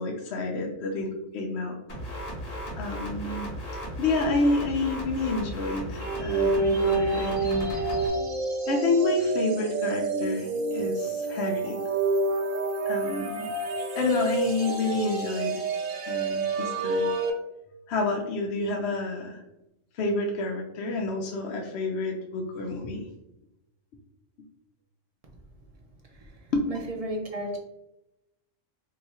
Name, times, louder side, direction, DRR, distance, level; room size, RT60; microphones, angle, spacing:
voice 1, 0.0-1.8 2.8-3.5 3.7-7.9 8.7-11.8 12.9-13.5 13.9-15.6 16.0-17.1 17.9-19.4 19.9-23.0 26.5-26.6, left 2 dB, 65° left, 1 dB, 0.8 m, -29 dB
sound 1, 1.9-8.1, equal, 35° left, 1.0 m, -36 dB
sound 2, 6.0-17.3, right 3 dB, 85° right, 1.0 m, -28 dB
voice 2, 26.7-27.6, right 1 dB, 60° right, 0 dB, 0.4 m, -32 dB
2.9 x 2.3 x 4.1 m, 0.89 s
omnidirectional pair, 1.3 m